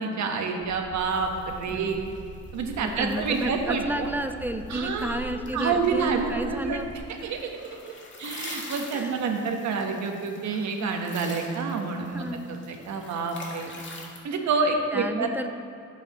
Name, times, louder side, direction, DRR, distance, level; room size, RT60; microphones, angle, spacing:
voice 1, 0.0-2.0 2.5-4.1 4.7-5.2 5.5-6.8 7.2-7.4 7.6-7.9 8.2-13.7 14.2-15.3, right 4 dB, 65° right, 3 dB, 1.3 m, -28 dB
sound 1, 0.6-7.0, right 2 dB, 60° left, 1.6 m, -42 dB
sound 2, 1.0-14.2, left 2 dB, 40° left, 1.9 m, -45 dB
voice 2, 1.7-2.2 2.8-6.9 8.9-9.2 12.1-12.4 14.9-15.5, right 1 dB, 5° right, 7 dB, 0.6 m, -32 dB
15.0 x 8.0 x 3.1 m, 2.4 s
cardioid pair, 90°, 30 cm